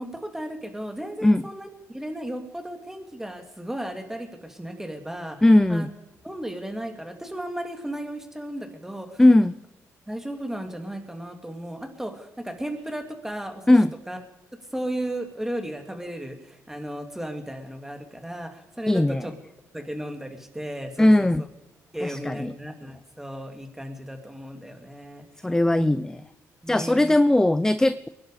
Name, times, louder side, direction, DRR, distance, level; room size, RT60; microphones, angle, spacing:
voice 1, 0.0-5.4 5.7-5.9 6.2-9.2 10.1-13.7 14.1-14.2 14.7-19.3 19.7-21.3 21.9-25.9 26.6-27.1, right 1 dB, 5° right, 5 dB, 2.8 m, -35 dB
voice 2, 5.4-5.9 9.2-9.5 13.7-13.9 18.9-19.3 21.0-21.4 22.0-22.5 25.4-26.2 26.7-28.1, left 1 dB, 10° left, 15 dB, 0.5 m, -19 dB
22.0 x 11.5 x 5.1 m, 1.0 s
cardioid pair, 80°, 6 cm